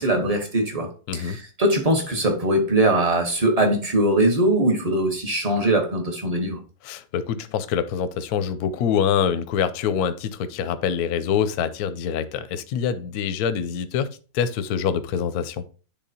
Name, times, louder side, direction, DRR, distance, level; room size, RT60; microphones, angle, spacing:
voice 1, 0.0-6.6, right 1 dB, 30° right, 0.8 m, -21 dB
voice 2, 6.8-14.1 14.3-15.6, left 8 dB, 70° left, 0.9 m, -25 dB
10.0 x 3.6 x 2.7 m
omnidirectional pair, 2.0 m